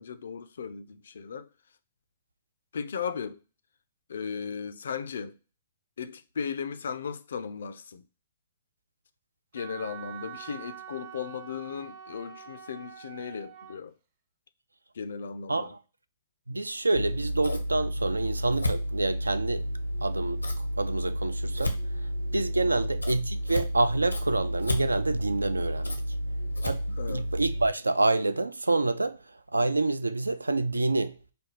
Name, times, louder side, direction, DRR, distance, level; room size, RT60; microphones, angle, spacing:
voice 1, 0.0-1.5 2.7-3.4 4.1-5.4 6.0-8.0 9.5-13.9 14.9-15.7 19.1-19.2 22.7-22.9 26.9-27.3, left 6 dB, 60° left, 0.4 m, -36 dB
Wind instrument woodwind instrument, 9.6-13.8, right 9 dB, 40° right, 0.6 m, -45 dB
voice 2, 16.5-19.7 20.0-21.8 22.3-26.0 26.6-26.8 27.1-29.2 29.5-31.2, right 2 dB, 80° right, 0.3 m, -27 dB
Scissors, 16.9-27.6, equal, 85° left, 0.7 m, -31 dB
5.0 x 2.3 x 3.0 m
figure-of-eight pair, 120°, 0 cm